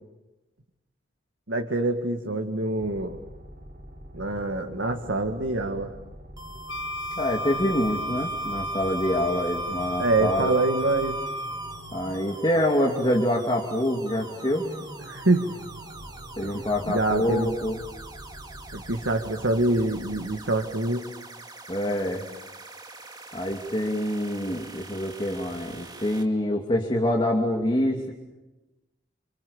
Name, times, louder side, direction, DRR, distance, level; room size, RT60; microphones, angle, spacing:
voice 1, 1.5-3.2 4.1-5.9 10.0-11.2 15.1-15.5 16.4-16.6 16.9-17.5 18.7-21.1, right 2 dB, 85° right, 4 dB, 2.0 m, -25 dB
sound 1, 2.8-20.8, equal, 45° right, 4.9 m, -45 dB
sound 2, 6.4-26.2, right 2 dB, 20° right, 2.5 m, -44 dB
Wind instrument woodwind instrument, 6.7-11.8, equal, 65° left, 1.2 m, -32 dB
voice 2, 7.2-10.6 11.9-14.6 16.4-17.8 21.7-22.2 23.3-28.1, left 1 dB, 25° left, 1 dB, 2.7 m, -26 dB
29.5 x 28.0 x 7.2 m, 1.0 s
head